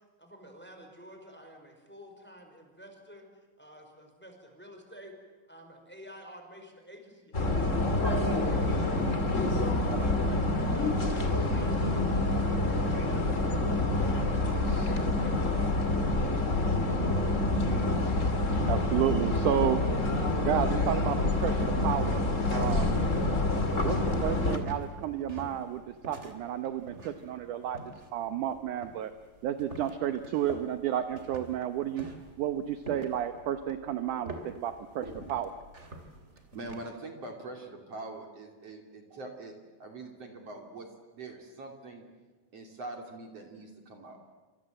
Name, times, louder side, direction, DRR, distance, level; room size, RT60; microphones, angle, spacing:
voice 1, 0.2-3.2 3.6-5.1 5.5-7.8 8.4-9.2 9.7-11.8 12.1-14.2 14.6-15.6, right 1 dB, 5° left, 3 dB, 5.0 m, -49 dB
sound 1, 7.3-24.6, left 2 dB, 25° left, 2.5 m, -27 dB
voice 2, 18.7-19.8 20.4-22.2 22.5-23.0 23.8-27.8 28.1-29.1 29.4-32.1 32.4-35.5, right 10 dB, 70° right, 9 dB, 2.3 m, -31 dB
sound 2, 22.4-36.9, right 2 dB, 20° right, 2.8 m, -47 dB
voice 3, 36.5-39.5 39.8-40.9 41.1-42.0 42.5-44.2, right 2 dB, 45° right, 3 dB, 3.7 m, -43 dB
28.0 x 26.0 x 7.8 m, 1.3 s
omnidirectional pair, 4.1 m